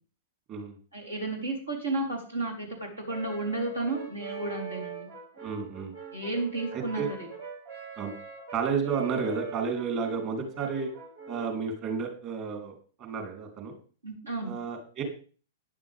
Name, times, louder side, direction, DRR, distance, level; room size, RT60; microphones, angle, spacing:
voice 1, 0.9-5.1 6.1-7.3 14.0-14.6, right 2 dB, 80° right, 0 dB, 4.1 m, -33 dB
Brass instrument, 3.1-11.6, right 6 dB, 65° right, 2.7 m, -42 dB
voice 2, 5.4-5.9 6.7-7.1 8.0-8.1 8.5-10.9 11.3-13.7 14.4-15.0, right 5 dB, 35° right, 3 dB, 3.5 m, -32 dB
13.0 x 10.5 x 3.6 m, 0.40 s
figure-of-eight pair, 105°, 0 cm